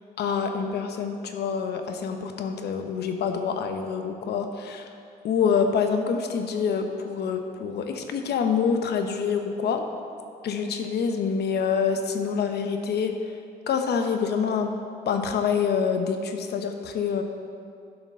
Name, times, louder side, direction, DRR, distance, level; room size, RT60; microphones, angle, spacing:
voice 1, 0.2-4.9 5.2-9.8 10.4-13.2 13.7-14.7 15.1-17.2, left 6 dB, 85° left, 5 dB, 0.9 m, -26 dB
11.5 x 5.9 x 5.5 m, 2.5 s
cardioid pair, 115°, 17 cm